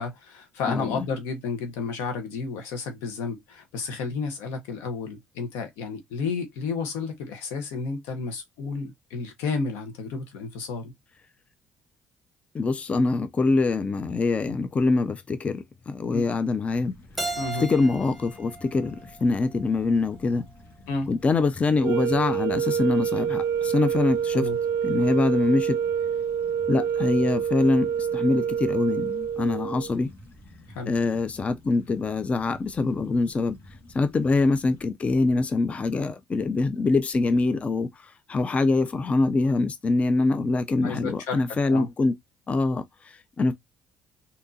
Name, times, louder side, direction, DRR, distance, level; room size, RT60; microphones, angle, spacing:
voice 1, 0.0-10.9 16.1-16.2 17.4-17.7 20.9-21.1 24.3-24.6 30.7-30.9 40.8-41.4 41.7-41.9, left 4 dB, 85° left, 1.1 m, -31 dB
voice 2, 0.7-1.1 12.5-16.9 17.2-20.5 21.1-24.5 24.8-25.8 26.7-30.1 30.9-33.6 33.9-42.2 42.5-43.5, left 3 dB, 30° left, 0.5 m, -24 dB
sound 1, 16.7-34.8, left 1 dB, 60° left, 1.6 m, -50 dB
Keyboard (musical), 17.2-20.0, right 2 dB, 5° right, 1.0 m, -36 dB
sound 2, 21.8-30.0, right 8 dB, 60° right, 0.4 m, -27 dB
3.6 x 2.8 x 2.7 m
supercardioid pair, 70°, 4 cm